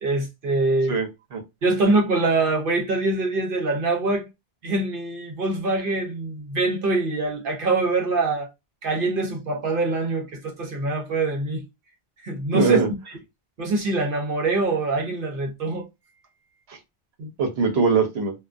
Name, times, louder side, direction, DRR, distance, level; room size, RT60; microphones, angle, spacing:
voice 1, 0.0-0.9 1.6-4.3 4.6-8.5 8.8-11.6 12.2-12.8 13.6-15.9, right 3 dB, 60° right, 1.0 m, -24 dB
voice 2, 0.9-1.4 12.5-12.9 16.7-16.8 17.2-18.3, right 4 dB, 85° right, 1.0 m, -22 dB
2.4 x 2.3 x 2.4 m
omnidirectional pair, 1.0 m